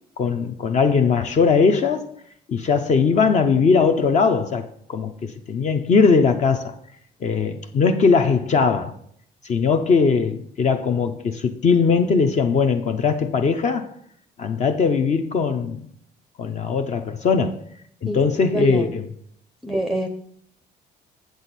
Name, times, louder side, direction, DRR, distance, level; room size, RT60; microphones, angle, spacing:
voice 1, 0.2-2.1 2.5-6.7 7.2-8.9 9.4-13.9 14.4-15.8 16.4-17.6 18.0-19.1, left 5 dB, 45° left, 0.6 m, -20 dB
voice 2, 18.5-18.8 19.6-20.1, right 1 dB, ahead, 0.5 m, -24 dB
7.9 x 6.4 x 4.1 m
cardioid pair, 110°, 17 cm